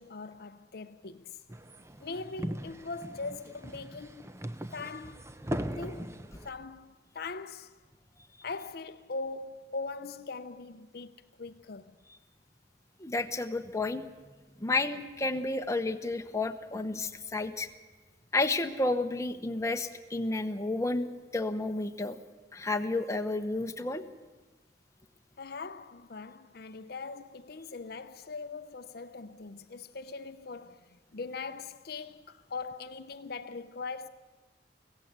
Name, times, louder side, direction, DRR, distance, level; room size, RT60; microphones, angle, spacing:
voice 1, 0.0-1.4 2.0-4.3 4.7-5.5 5.7-6.2 6.4-7.7 8.4-11.9 25.4-34.1, left 4 dB, 55° left, 0.7 m, -41 dB
sound 1, 1.5-6.5, equal, 15° right, 0.7 m, -39 dB
voice 2, 13.0-14.0 14.6-17.7 18.3-21.1 21.3-22.2 22.5-24.0, left 2 dB, 15° left, 0.9 m, -31 dB
24.5 x 16.5 x 8.1 m
head